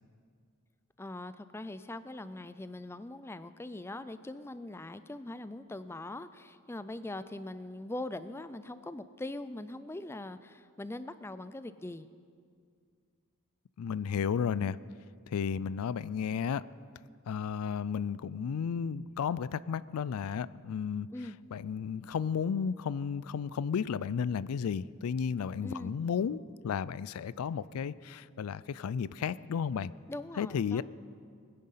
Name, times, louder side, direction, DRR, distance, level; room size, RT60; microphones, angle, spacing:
voice 1, 1.0-12.1 21.1-21.4 25.6-25.9 30.1-30.8, left 2 dB, 10° left, 13 dB, 0.4 m, -42 dB
voice 2, 13.8-14.8 15.3-16.6 17.3-21.1 21.5-29.9 30.4-30.8, left 7 dB, 80° left, 18 dB, 0.4 m, -33 dB
20.5 x 10.5 x 5.7 m, 2.2 s
head